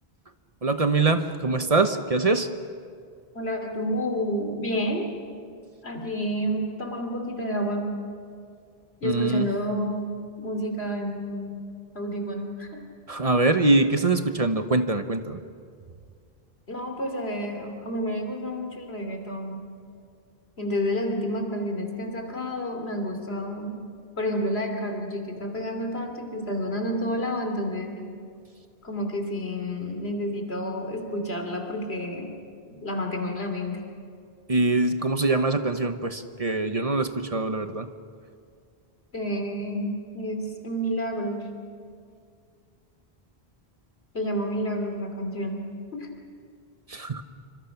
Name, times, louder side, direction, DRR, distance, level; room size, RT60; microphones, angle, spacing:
voice 1, 0.6-2.5 9.0-9.5 13.1-15.4 34.5-37.9 46.9-47.2, right 3 dB, 35° right, 8 dB, 1.1 m, -23 dB
voice 2, 3.3-5.1 5.8-8.0 9.0-11.6 11.9-12.8 16.7-19.6 20.6-23.8 24.2-28.0 28.8-32.3 32.7-33.8 39.1-41.5 44.1-45.6 45.9-46.1, equal, 90° left, 4 dB, 3.2 m, -30 dB
27.0 x 25.5 x 5.9 m, 2.2 s
omnidirectional pair, 1.0 m